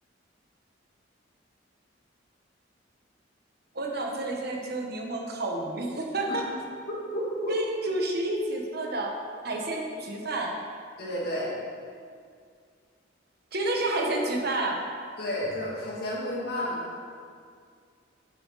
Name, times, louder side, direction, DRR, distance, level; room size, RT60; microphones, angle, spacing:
voice 1, 3.7-6.5 7.5-9.2 9.4-10.6 13.5-14.8, right 2 dB, 55° right, 1 dB, 1.2 m, -30 dB
voice 2, 7.1-7.5 11.0-11.5 15.2-16.9, equal, 55° left, -6 dB, 2.6 m, -31 dB
9.4 x 7.8 x 4.1 m, 2.2 s
head